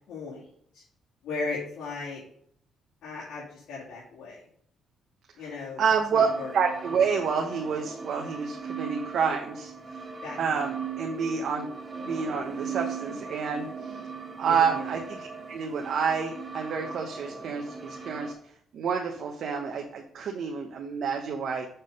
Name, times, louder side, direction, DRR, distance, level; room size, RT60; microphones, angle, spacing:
voice 1, 0.1-0.5 0.7-0.8 1.2-2.2 3.0-4.4 5.4-5.8 6.1-6.5 10.2-10.4 14.5-14.9, left 3 dB, 80° left, -8 dB, 2.5 m, -36 dB
voice 2, 5.8-6.3 6.5-9.7 10.4-11.7 12.0-13.9 14.4-18.3 18.7-21.7, right 6 dB, 65° right, 2 dB, 1.0 m, -28 dB
sound 1, 6.2-18.3, right 5 dB, 30° right, 1.4 m, -39 dB
6.9 x 3.8 x 5.5 m, 0.64 s
cardioid pair, 90°, 0 cm